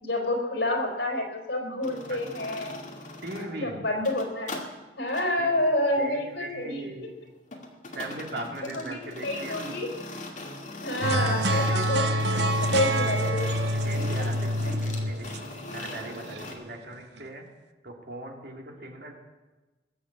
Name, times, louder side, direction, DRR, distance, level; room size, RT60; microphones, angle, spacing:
voice 1, 0.0-2.7 3.4-4.6 5.0-6.9 8.6-9.9 10.8-13.5 13.9-14.3 14.6-14.7, left 1 dB, 80° left, 1 dB, 3.9 m, -29 dB
sound 1, 1.8-3.5 3.9-4.7 5.1-5.3 7.5-16.5, left 2 dB, 45° left, 2.1 m, -40 dB
voice 2, 3.2-3.8 5.4-5.5 6.0-7.2 7.9-9.7 11.0-11.4 11.6-11.9 12.3-12.6 13.0-13.4 13.7-15.4 15.7-17.5 17.8-19.1, right 1 dB, 70° right, 1 dB, 2.8 m, -40 dB
sound 2, 11.0-16.4, equal, 85° right, 0.9 m, -26 dB
21.0 x 7.2 x 8.6 m, 1.2 s
head